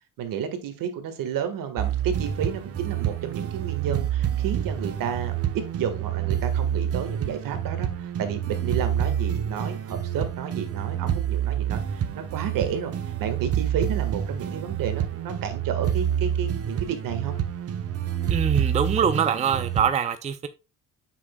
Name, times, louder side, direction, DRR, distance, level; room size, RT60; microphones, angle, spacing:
voice 1, 0.2-5.3 5.7-17.3, right 7 dB, 70° right, 1.7 m, -31 dB
sound 1, 1.8-19.9, right 10 dB, 45° right, 0.9 m, -28 dB
voice 2, 18.3-20.5, right 7 dB, 20° right, 0.4 m, -24 dB
7.6 x 6.2 x 2.2 m
cardioid pair, 140°, 35 cm